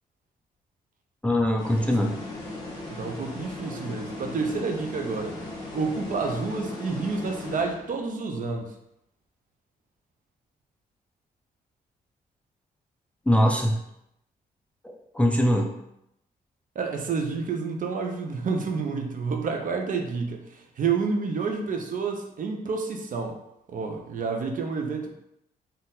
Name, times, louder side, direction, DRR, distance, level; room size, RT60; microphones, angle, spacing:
voice 1, 1.2-2.2 13.3-13.7 14.8-15.7, equal, 5° left, 1 dB, 0.4 m, -22 dB
sound 1, 1.6-8.2, left 2 dB, 25° left, 1.4 m, -37 dB
voice 2, 2.9-5.3 5.7-8.7 16.7-23.4 23.7-25.1, right 4 dB, 55° right, 3 dB, 0.7 m, -29 dB
4.2 x 2.5 x 3.9 m, 0.81 s
cardioid pair, 115°, 17 cm